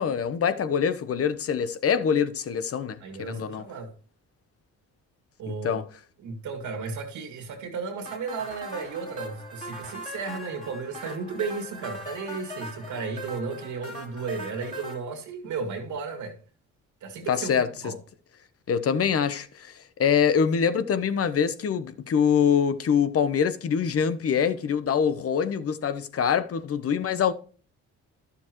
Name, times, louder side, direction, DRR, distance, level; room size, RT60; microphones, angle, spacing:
voice 1, 0.0-3.6 5.5-5.8 17.3-17.9 18.7-27.3, left 7 dB, 50° left, 0.9 m, -24 dB
voice 2, 3.0-3.9 5.4-5.8 6.2-16.4 17.0-18.0, right 4 dB, 75° right, 2.1 m, -34 dB
sound 1, 8.1-15.0, equal, 25° left, 3.2 m, -40 dB
12.0 x 7.0 x 3.1 m
cardioid pair, 90°, 30 cm